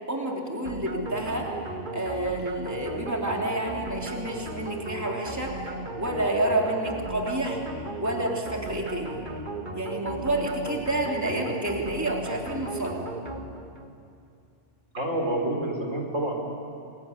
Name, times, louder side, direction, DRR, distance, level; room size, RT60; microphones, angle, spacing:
voice 1, 0.1-1.5 1.9-5.5 6.0-7.6 8.0-9.2 9.7-13.0, right 1 dB, 15° right, -1 dB, 3.3 m, -29 dB
sound 1, 0.7-14.0, right 2 dB, 40° right, 1.8 m, -36 dB
voice 2, 14.9-16.3, right 1 dB, 75° right, 1 dB, 4.5 m, -28 dB
27.0 x 22.5 x 9.8 m, 2.5 s
omnidirectional pair, 1.3 m